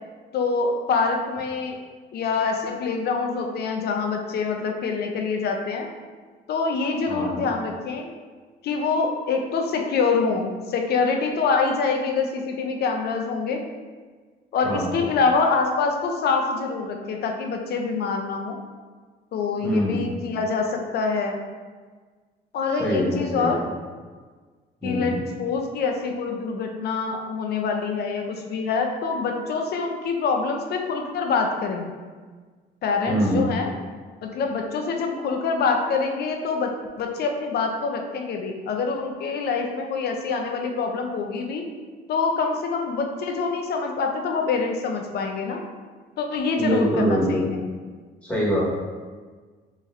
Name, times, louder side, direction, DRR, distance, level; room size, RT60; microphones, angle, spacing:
voice 1, 0.3-1.8 2.1-5.9 6.5-8.1 8.6-13.6 14.5-18.6 19.3-21.4 22.5-23.6 24.8-31.9 32.8-33.7 34.2-41.6 42.1-45.6 46.2-47.6, left 4 dB, 60° left, 3 dB, 0.5 m, -25 dB
voice 2, 7.1-7.4 14.6-15.0 19.6-20.1 22.8-23.5 24.8-25.2 33.1-33.5 46.6-47.4 48.2-48.6, equal, 5° left, -8 dB, 1.3 m, -24 dB
4.0 x 3.0 x 2.5 m, 1.5 s
cardioid pair, 115°, 18 cm